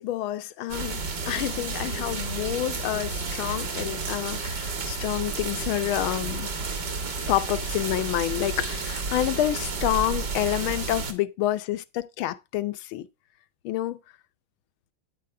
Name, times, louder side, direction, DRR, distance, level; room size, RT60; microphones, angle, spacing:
voice 1, 0.0-6.5 7.3-13.1 13.6-14.0, left 14 dB, 85° left, 1.6 m, -28 dB
sound 1, 0.7-11.1, right 4 dB, 55° right, 2.3 m, -31 dB
10.5 x 9.6 x 3.3 m
omnidirectional pair, 2.2 m